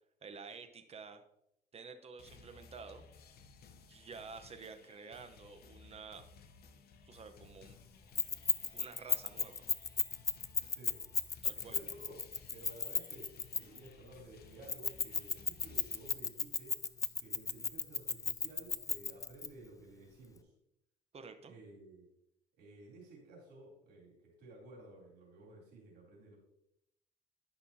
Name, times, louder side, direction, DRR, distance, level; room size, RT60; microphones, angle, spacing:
voice 1, 0.2-1.2 1.7-3.1 3.7-6.2 7.0-7.8 8.7-9.7 11.4-11.8 21.1-21.5, right 5 dB, 40° right, 8 dB, 0.9 m, -50 dB
sound 1, 2.2-16.1, left 4 dB, 70° left, 0.9 m, -59 dB
Keys jangling, 8.2-13.9 14.7-19.5, left 5 dB, 20° left, 0.4 m, -34 dB
voice 2, 10.7-11.1 11.5-12.2 12.5-16.8 17.2-20.5 21.4-22.1 22.6-26.4, right 2 dB, 75° right, -2 dB, 3.2 m, -54 dB
11.0 x 5.9 x 2.8 m, 0.79 s
cardioid pair, 110°, 17 cm